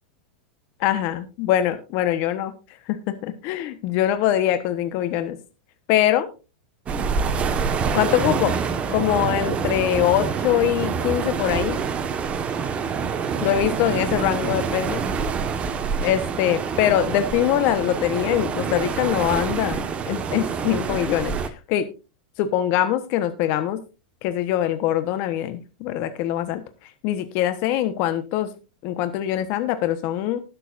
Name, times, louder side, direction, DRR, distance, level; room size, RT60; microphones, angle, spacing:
voice 1, 0.8-2.5 2.9-5.4 5.9-6.3 7.9-8.5 8.9-11.8 13.4-15.0 16.0-19.8 20.0-21.9 22.4-23.8 24.2-28.5 28.8-30.4, left 11 dB, 55° left, 10 dB, 1.2 m, -23 dB
sound 1, 6.9-21.5, right 6 dB, 25° right, 1.4 m, -26 dB
19.5 x 6.8 x 2.6 m, 0.31 s
hypercardioid pair, 120°, 5 cm